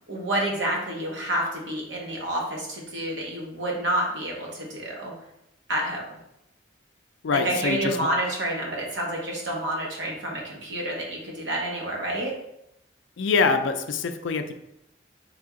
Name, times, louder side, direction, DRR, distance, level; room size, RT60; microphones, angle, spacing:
voice 1, 0.1-5.1 5.7-6.2 7.3-12.3, right 1 dB, 70° right, -2 dB, 1.0 m, -29 dB
voice 2, 7.2-8.1 13.2-14.5, left 4 dB, 70° left, 8 dB, 0.4 m, -24 dB
3.4 x 2.9 x 3.6 m, 0.82 s
head